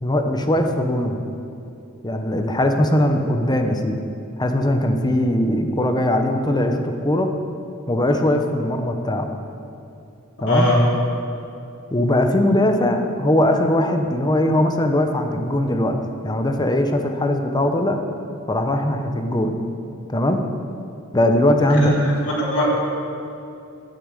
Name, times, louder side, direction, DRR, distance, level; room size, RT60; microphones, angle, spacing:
voice 1, 0.0-1.2 2.0-4.0 4.4-7.3 7.9-9.3 10.4-10.7 11.9-16.0 16.2-18.0 18.5-19.5 20.1-20.4 21.1-21.9, left 1 dB, 20° left, 5 dB, 0.8 m, -20 dB
voice 2, 10.5-10.8 21.8-22.7, left 1 dB, 60° left, -7 dB, 3.4 m, -20 dB
10.0 x 9.5 x 8.3 m, 2.7 s
head